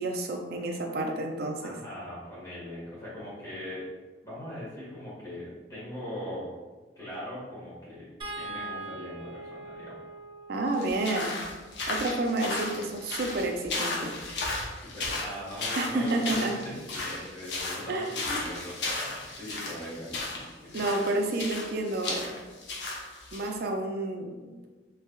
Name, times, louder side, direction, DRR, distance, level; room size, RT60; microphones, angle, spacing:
voice 1, 0.0-1.7 10.5-11.4 11.9-14.1 15.8-16.5 17.9-18.4 20.7-22.3 23.3-24.7, right 2 dB, 60° right, 3 dB, 0.4 m, -30 dB
voice 2, 1.6-3.9 4.2-6.5 6.9-10.0 14.8-20.8, equal, 20° left, -9 dB, 1.5 m, -40 dB
sound 1, 8.2-14.5 16.0-16.2 16.6-16.7, right 2 dB, 30° right, 0.8 m, -44 dB
sound 2, 10.7-23.5, left 2 dB, 65° left, 0.7 m, -35 dB
3.3 x 3.2 x 2.2 m, 1.3 s
head